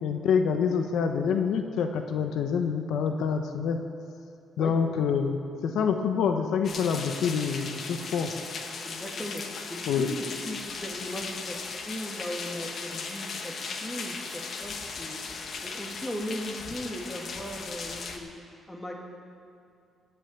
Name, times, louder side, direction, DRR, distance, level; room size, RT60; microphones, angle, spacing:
voice 1, 0.0-3.8 4.6-8.3 9.9-10.1, left 6 dB, 80° left, 5 dB, 1.0 m, -26 dB
sound 1, 6.6-18.2, left 4 dB, 55° left, 1.6 m, -37 dB
voice 2, 8.8-9.4 9.7-13.5 13.8-15.2 15.6-18.3 18.7-19.0, equal, 10° left, -1 dB, 2.6 m, -37 dB
17.5 x 7.3 x 8.3 m, 2.4 s
cardioid pair, 90°, 0 cm